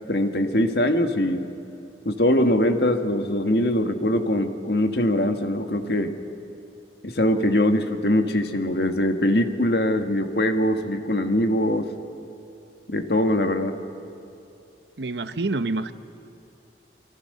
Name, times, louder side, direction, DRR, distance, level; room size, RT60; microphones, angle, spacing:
voice 1, 0.1-1.5 2.1-6.1 7.0-11.9 12.9-13.8, left 1 dB, 65° left, 6 dB, 1.7 m, -22 dB
voice 2, 15.0-15.9, right 2 dB, 75° right, 11 dB, 0.9 m, -27 dB
29.5 x 23.5 x 6.7 m, 2.7 s
head